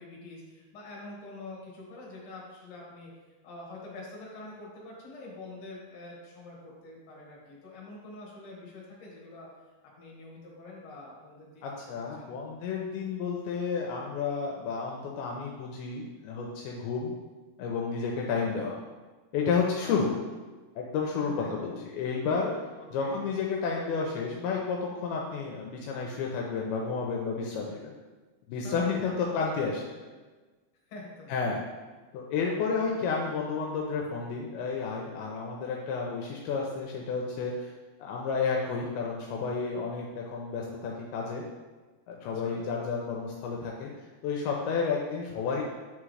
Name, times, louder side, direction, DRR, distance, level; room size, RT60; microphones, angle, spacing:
voice 1, 0.0-3.1 3.4-9.5 10.0-11.8 12.2-12.3 19.8-20.0 21.4-21.5 22.8-23.2 28.5-29.4 30.0-30.1 30.9-31.3 42.2-42.6, left 2 dB, 50° left, -4 dB, 1.8 m, -45 dB
voice 2, 11.6-17.1 17.6-18.8 19.3-20.1 20.8-22.5 22.9-27.9 28.5-29.8 31.3-31.6 32.1-37.7 38.0-41.4 42.1-43.9 44.2-45.6, left 5 dB, 85° left, -1 dB, 2.3 m, -31 dB
8.6 x 3.6 x 3.3 m, 1.3 s
omnidirectional pair, 4.7 m